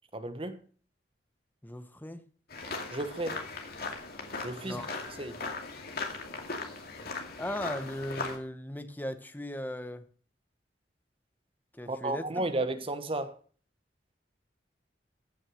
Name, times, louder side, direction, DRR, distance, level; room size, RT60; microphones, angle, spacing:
voice 1, 0.1-0.6 2.9-3.4 4.4-4.8 5.2-5.4 11.9-13.4, right 2 dB, 30° right, 1.2 m, -33 dB
voice 2, 1.6-2.2 4.6-4.9 7.4-10.1 11.7-12.5, left 1 dB, 10° left, 1.0 m, -38 dB
sound 1, 2.5-8.4, left 3 dB, 60° left, 2.3 m, -38 dB
15.5 x 6.2 x 6.3 m
head